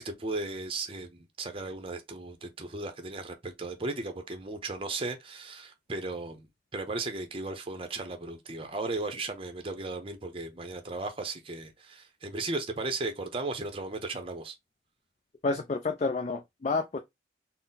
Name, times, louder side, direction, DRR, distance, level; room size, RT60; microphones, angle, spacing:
voice 1, 0.0-6.5 6.7-14.6, right 3 dB, 30° right, 0.6 m, -36 dB
voice 2, 15.4-17.0, left 3 dB, 35° left, 0.3 m, -29 dB
4.0 x 2.1 x 3.9 m
head